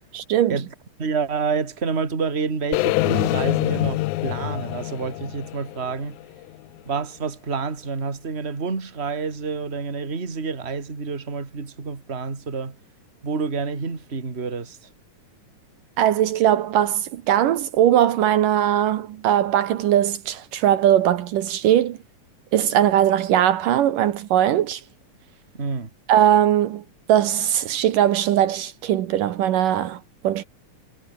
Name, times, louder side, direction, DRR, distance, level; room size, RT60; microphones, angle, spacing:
voice 1, 0.1-0.6 16.0-22.0 22.5-24.8 26.1-26.8 27.1-30.4, right 11 dB, 70° right, 2.7 m, -20 dB
voice 2, 1.0-6.2 6.8-12.8 13.2-14.9 25.5-25.9, right 5 dB, 20° right, 2.5 m, -28 dB
sound 1, 2.7-6.8, left 19 dB, 85° left, 1.7 m, -25 dB
omnidirectional pair, 4.0 m